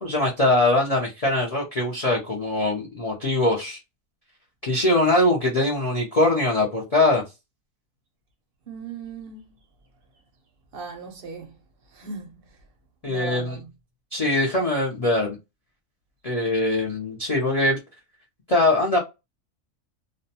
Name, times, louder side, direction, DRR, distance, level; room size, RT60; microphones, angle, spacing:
voice 1, 0.0-3.8 4.6-7.2 13.0-13.6 14.1-15.4 16.2-17.8 18.5-19.0, left 2 dB, 70° left, 0.3 m, -22 dB
voice 2, 8.7-9.5 10.7-11.5 11.9-12.3 13.0-13.7, right 4 dB, 60° right, 0.6 m, -37 dB
2.5 x 2.1 x 2.7 m
omnidirectional pair, 1.6 m